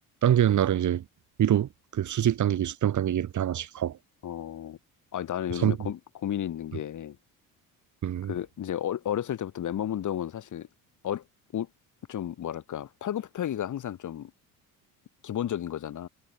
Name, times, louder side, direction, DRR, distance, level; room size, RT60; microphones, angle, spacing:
voice 1, 0.2-1.0 1.4-4.0 5.6-5.8 8.0-8.3, right 10 dB, 55° right, 3.9 m, -25 dB
voice 2, 4.2-4.8 5.1-7.2 8.3-10.7 11.0-11.2 11.5-11.7 12.1-14.3 15.2-16.1, left 10 dB, 60° left, 7.4 m, -32 dB
cardioid pair, 90°, 34 cm